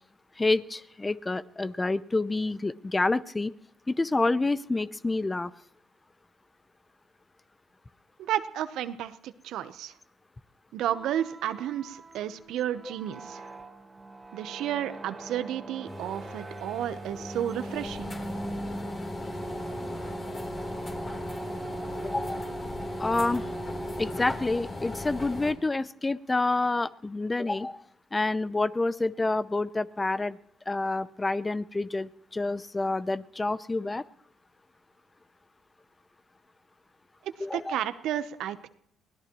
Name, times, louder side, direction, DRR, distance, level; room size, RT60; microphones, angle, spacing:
voice 1, 0.4-3.5 3.9-5.5 22.0-22.5 23.0-23.5 24.0-27.8 28.1-30.4 30.7-34.0 37.4-37.8, left 2 dB, 20° left, 17 dB, 0.6 m, -28 dB
voice 2, 8.3-9.9 10.7-13.5 14.3-18.1 37.5-38.7, right 11 dB, 75° right, 12 dB, 0.9 m, -32 dB
sound 1, 10.8-24.6, right 2 dB, 25° right, 2.0 m, -41 dB
sound 2, 15.9-25.5, left 2 dB, 35° left, 3.6 m, -37 dB
24.0 x 17.5 x 3.1 m, 0.72 s
supercardioid pair, 70°, 0 cm